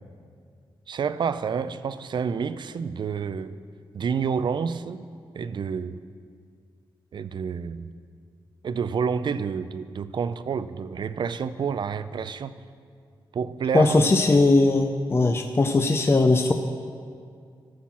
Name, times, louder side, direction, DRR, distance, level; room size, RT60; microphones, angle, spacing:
voice 1, 0.9-3.6 3.9-5.0 5.4-6.0 7.1-7.9 8.6-12.5 13.3-14.1, right 6 dB, 60° right, 14 dB, 0.4 m, -29 dB
voice 2, 13.7-16.5, left 2 dB, 30° left, 6 dB, 0.5 m, -19 dB
13.0 x 5.9 x 7.3 m, 2.2 s
cardioid pair, 90°, 9 cm